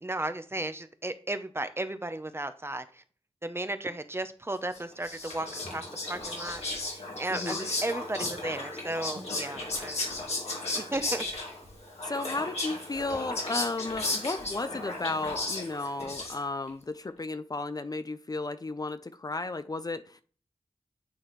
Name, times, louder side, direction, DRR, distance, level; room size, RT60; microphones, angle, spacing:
voice 1, 0.0-3.0 3.4-6.6 6.9-10.4 10.8-11.3, right 1 dB, 25° right, 0.7 m, -35 dB
Whispering, 4.7-16.7, left 2 dB, 80° left, 2.2 m, -35 dB
voice 2, 7.3-7.7 12.0-20.2, left 3 dB, 35° left, 0.5 m, -34 dB
9.1 x 3.9 x 3.1 m
cardioid pair, 45°, 10 cm